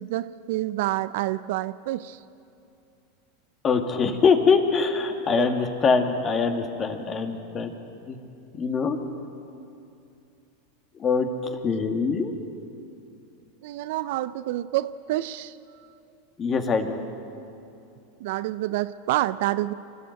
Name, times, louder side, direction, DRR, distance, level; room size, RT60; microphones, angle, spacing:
voice 1, 0.0-2.2 5.3-5.5 13.6-15.5 18.2-19.7, right 15 dB, 65° right, 15 dB, 0.5 m, -28 dB
voice 2, 3.6-7.7 8.1-8.2 8.5-9.0 11.0-12.3 16.4-17.0, left 5 dB, 30° left, 5 dB, 2.1 m, -23 dB
26.5 x 13.5 x 8.0 m, 2.6 s
hypercardioid pair, 95°, 0 cm